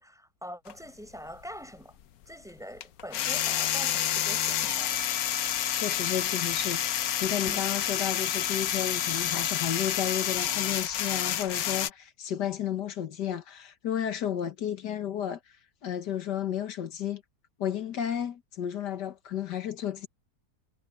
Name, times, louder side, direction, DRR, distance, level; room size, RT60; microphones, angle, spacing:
voice 1, 0.0-1.9 2.3-5.1 7.5-7.7, equal, ahead, 6.4 m, -43 dB
sound 1, 0.7-0.8 2.8-11.9, left 10 dB, 65° left, 1.2 m, -29 dB
voice 2, 5.7-15.6 15.8-17.2 17.6-20.1, left 10 dB, 90° left, 1.9 m, -32 dB
omnidirectional pair, 1.8 m